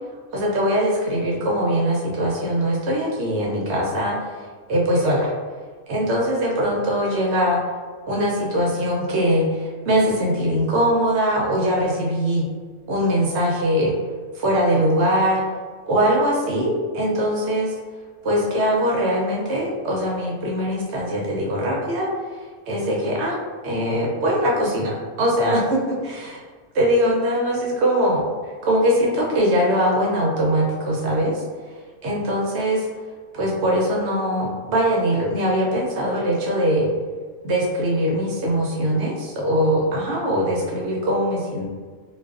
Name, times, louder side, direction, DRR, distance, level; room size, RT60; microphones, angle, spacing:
voice 1, 0.3-4.3 4.7-5.3 5.9-7.6 8.1-12.4 12.9-13.9 14.3-15.4 15.9-17.7 18.2-22.1 22.7-23.4 23.6-26.4 26.7-28.2 28.6-31.4 32.0-32.9 33.3-36.9 37.4-41.7, equal, 65° right, -3 dB, 0.7 m, -21 dB
2.4 x 2.3 x 2.3 m, 1.5 s
omnidirectional pair, 1.5 m